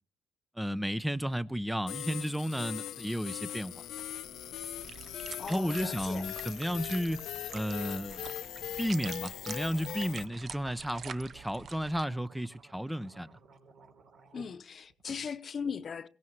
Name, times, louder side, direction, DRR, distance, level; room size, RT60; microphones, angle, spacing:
voice 1, 0.6-3.7 5.5-7.2 7.5-8.3 8.8-13.3, equal, 5° right, 0.6 m, -33 dB
sound 1, 1.9-10.3, left 11 dB, 80° left, 0.8 m, -40 dB
sound 2, 3.9-12.0, right 7 dB, 50° right, 0.7 m, -47 dB
voice 2, 5.4-6.4 14.3-16.1, left 6 dB, 50° left, 0.9 m, -38 dB
sound 3, 9.4-14.5 14.8-15.3, right 4 dB, 65° right, 3.7 m, -57 dB
22.5 x 17.0 x 3.1 m
cardioid pair, 90°, 0 cm